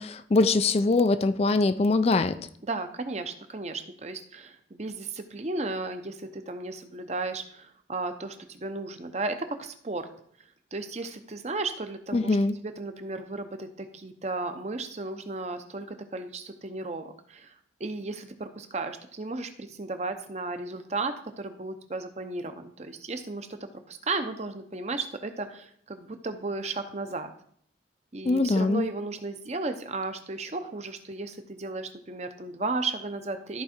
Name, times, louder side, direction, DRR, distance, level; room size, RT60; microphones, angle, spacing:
voice 1, 0.0-2.4 12.1-12.5 28.2-28.8, left 3 dB, 30° left, 12 dB, 0.3 m, -23 dB
voice 2, 2.6-10.1 10.7-17.5 17.8-27.3 28.1-33.6, right 3 dB, 35° right, 8 dB, 0.7 m, -34 dB
13.5 x 4.7 x 4.3 m, 0.65 s
head